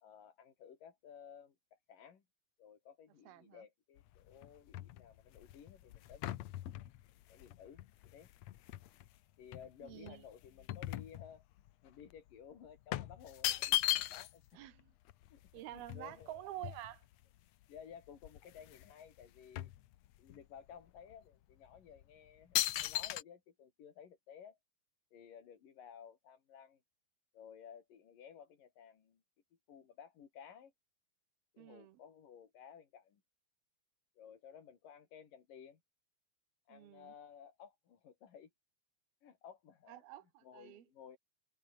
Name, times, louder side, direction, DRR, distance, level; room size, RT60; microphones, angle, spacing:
voice 1, 0.0-2.2 2.6-6.5 7.3-8.3 9.4-11.4 11.8-14.4 15.3-16.4 17.7-19.7 20.2-24.6 25.1-26.8 27.3-29.2 29.7-30.7 31.5-33.2 34.2-35.8 36.7-38.5 39.2-40.0 40.4-41.2, left 8 dB, 60° left, 4.6 m, -56 dB
voice 2, 3.3-3.6 9.8-10.2 14.5-14.9 15.5-17.0 31.6-32.0 36.7-37.1 39.9-40.8, right 14 dB, 80° right, 3.2 m, -49 dB
glass fall break, 4.0-9.1 9.5-11.7 12.0-12.2 12.9-14.5 14.8-14.9 15.1-17.2 17.8-17.9 18.1-18.9 19.2-20.4 21.0-21.1 21.8-22.0 22.5-23.2, left 14 dB, 85° left, 1.5 m, -38 dB
omnidirectional pair, 4.4 m